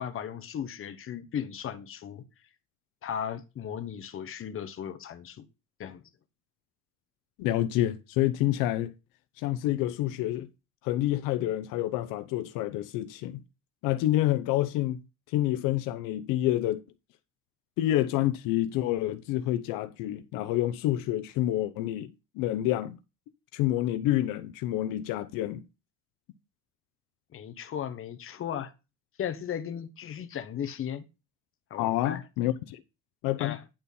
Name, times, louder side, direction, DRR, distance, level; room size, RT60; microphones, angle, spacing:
voice 1, 0.0-2.2 3.0-5.4 5.8-6.0 27.3-28.7 29.2-31.1 31.7-32.2 33.4-33.6, left 9 dB, 40° left, 1.1 m, -36 dB
voice 2, 7.4-8.9 9.4-10.5 10.8-13.4 13.8-15.0 15.3-16.8 17.8-22.1 22.4-23.0 23.5-25.6 31.8-32.8 33.2-33.6, left 14 dB, 85° left, 0.8 m, -28 dB
10.5 x 4.3 x 5.4 m
cardioid pair, 130°, 32 cm